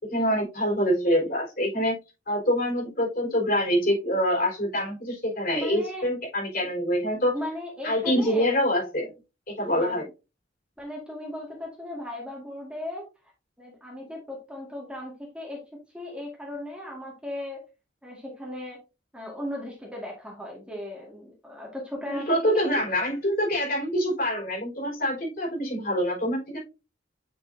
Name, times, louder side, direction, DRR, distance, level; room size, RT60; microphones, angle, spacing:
voice 1, 0.0-1.9 2.3-7.3 7.8-9.1 9.5-10.1 22.0-26.6, equal, 45° left, -3 dB, 4.5 m, -25 dB
voice 2, 5.5-6.1 7.3-8.6 9.8-10.0 10.8-13.1 13.6-15.6 15.9-17.6 18.0-18.8 19.1-22.7, left 1 dB, 5° right, -2 dB, 2.0 m, -37 dB
8.7 x 5.5 x 2.7 m, 0.28 s
head